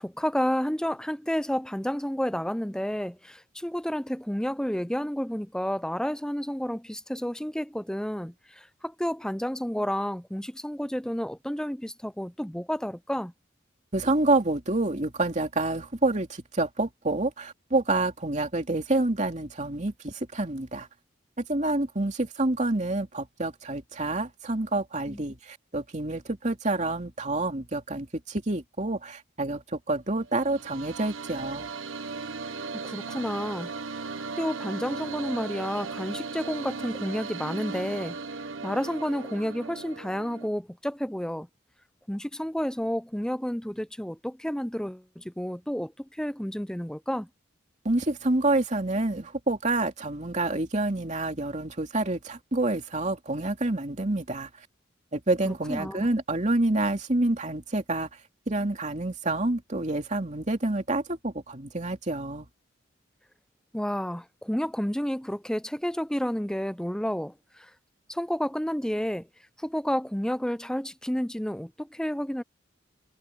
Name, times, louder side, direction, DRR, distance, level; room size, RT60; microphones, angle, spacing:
voice 1, 0.0-13.3 25.1-25.2 32.8-33.7 34.4-38.2 38.6-41.5 42.1-45.9 46.2-47.3 55.4-56.1 63.7-67.7 68.1-69.3 69.6-72.4, equal, 5° left, 0.6 m, -30 dB
voice 2, 13.9-20.9 21.4-31.7 47.8-54.5 55.1-58.1 58.5-62.5, right 2 dB, 40° right, 2.7 m, -28 dB
sound 1, 30.2-40.5, right 4 dB, 90° right, 1.3 m, -37 dB
head